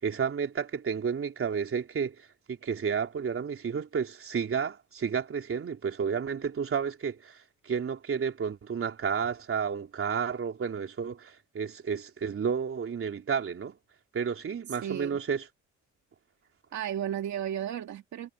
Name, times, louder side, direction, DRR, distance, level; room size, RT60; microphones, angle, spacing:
voice 1, 0.0-2.2 2.5-7.4 7.6-13.8 14.1-15.4, right 6 dB, 45° right, 3.8 m, -31 dB
voice 2, 14.7-15.2 16.7-18.3, right 10 dB, 70° right, 2.2 m, -34 dB
cardioid pair, 90°, 30 cm